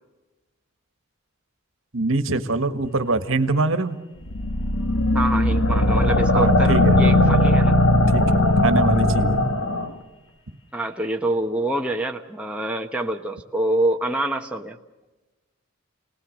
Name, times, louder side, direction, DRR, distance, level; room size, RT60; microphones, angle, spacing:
voice 1, 1.9-4.0 6.3-7.1 8.1-9.4, right 3 dB, 65° right, 9 dB, 1.5 m, -24 dB
sound 1, 4.3-9.9, left 1 dB, 75° left, 1.8 m, -18 dB
voice 2, 5.1-7.8 10.7-14.8, right 1 dB, 5° right, 2 dB, 1.0 m, -26 dB
29.5 x 19.0 x 6.6 m, 1.1 s
head